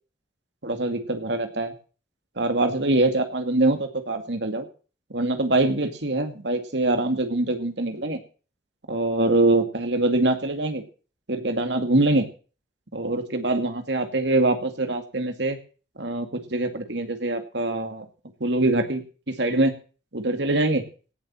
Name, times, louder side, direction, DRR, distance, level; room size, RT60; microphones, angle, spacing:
voice 1, 0.6-1.7 2.4-4.7 5.1-8.2 8.9-10.8 11.3-12.3 12.9-15.6 16.0-18.1 18.4-19.7 20.1-20.8, right 2 dB, 75° right, 7 dB, 2.3 m, -24 dB
17.5 x 7.4 x 7.6 m, 0.38 s
head